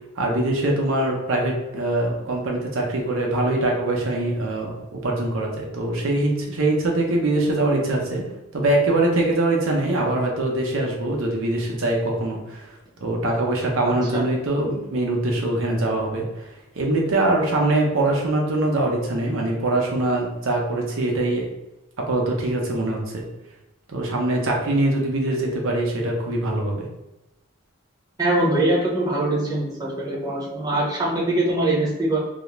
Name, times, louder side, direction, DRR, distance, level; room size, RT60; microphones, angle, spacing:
voice 1, 0.2-8.2 8.5-12.7 13.0-16.2 16.7-21.5 22.0-23.2 23.9-26.9, right 2 dB, 80° right, 0 dB, 0.6 m, -23 dB
voice 2, 13.9-14.2 28.2-32.2, right 1 dB, 20° right, -5 dB, 0.6 m, -23 dB
2.3 x 2.1 x 3.0 m, 0.97 s
head